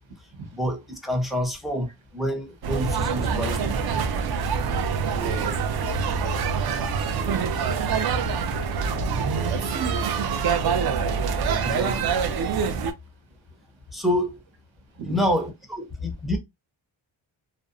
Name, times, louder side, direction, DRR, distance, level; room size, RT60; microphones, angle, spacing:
voice 1, 0.5-1.9 2.1-3.8 11.6-12.1 13.9-14.4 15.1-16.4, left 1 dB, ahead, 0.6 m, -27 dB
sound 1, 2.6-12.9, right 5 dB, 50° right, 0.5 m, -25 dB
voice 2, 5.1-5.7 9.4-10.4 14.9-15.3, right 5 dB, 70° right, 1.1 m, -35 dB
2.5 x 2.0 x 2.4 m
cardioid pair, 115°, 49 cm